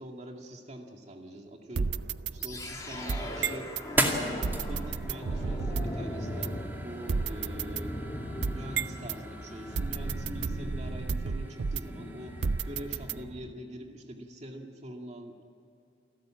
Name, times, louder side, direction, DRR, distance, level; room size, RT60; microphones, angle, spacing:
voice 1, 0.0-1.9 2.3-3.7 4.0-8.0 8.5-12.4 12.6-15.4, right 1 dB, 40° right, 2 dB, 2.1 m, -44 dB
sound 1, 1.7-3.9 4.4-6.0 6.4-6.5 7.1-9.2 9.7-12.0 12.4-13.5, right 5 dB, 80° right, 0.5 m, -33 dB
sound 2, 2.3-13.2, right 1 dB, 10° right, 2.3 m, -39 dB
sound 3, 2.4-13.5, left 1 dB, 20° left, 3.0 m, -39 dB
28.5 x 13.0 x 8.8 m, 2.6 s
head